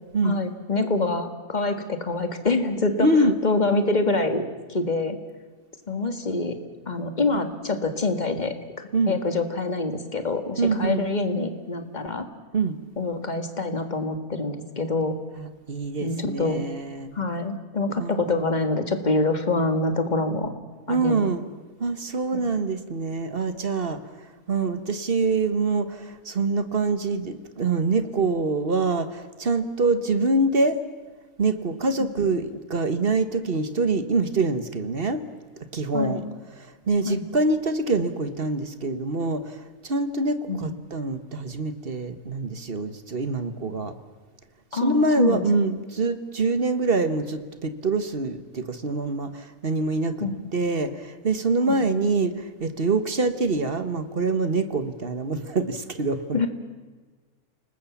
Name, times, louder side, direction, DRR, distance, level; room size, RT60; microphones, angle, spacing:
voice 1, 0.2-3.1 3.4-4.4 4.7-5.2 5.9-6.6 6.9-12.3 13.0-15.2 16.0-16.6 17.2-20.5 20.9-21.3 22.3-22.4 35.9-36.2 37.0-37.2 40.5-40.7 44.7-45.4 50.2-50.5 51.7-51.8 56.3-56.5, left 3 dB, 30° left, 8 dB, 1.8 m, -26 dB
voice 2, 3.0-3.4 8.9-9.2 10.6-11.0 12.5-12.8 15.4-17.2 18.0-18.2 20.9-21.5 21.8-24.0 24.5-30.8 31.4-35.2 35.7-36.2 36.9-43.9 44.7-50.3 50.5-56.5, right 3 dB, 40° right, 11 dB, 1.4 m, -25 dB
29.5 x 19.5 x 7.2 m, 1.4 s
omnidirectional pair, 1.6 m